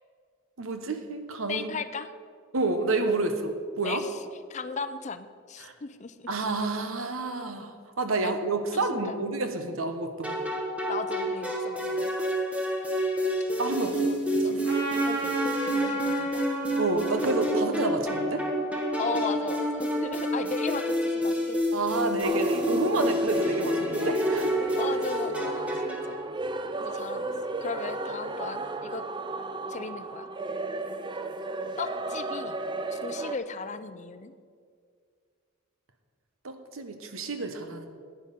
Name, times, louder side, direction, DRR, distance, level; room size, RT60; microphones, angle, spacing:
voice 1, 0.6-1.8 2.5-4.0 5.6-5.7 6.3-10.4 13.6-14.1 14.3-14.6 16.8-18.4 21.7-24.5 36.4-37.9, right 3 dB, 80° right, 7 dB, 1.0 m, -29 dB
voice 2, 1.5-2.1 3.8-4.2 4.5-6.3 8.2-8.3 8.7-9.3 10.9-12.2 13.7-14.2 14.4-14.6 14.9-16.4 19.0-21.8 23.4-23.6 24.8-26.2 26.8-27.3 27.6-29.1 29.7-30.3 31.8-32.6 32.9-34.3, left 5 dB, 35° left, 12 dB, 0.5 m, -37 dB
sound 1, 10.2-26.2, equal, 5° right, 1.2 m, -29 dB
Trumpet, 14.6-19.3, right 1 dB, 55° right, 2.8 m, -36 dB
sound 2, 22.2-33.3, right 2 dB, 20° right, 0.4 m, -33 dB
10.5 x 9.1 x 5.3 m, 2.1 s
head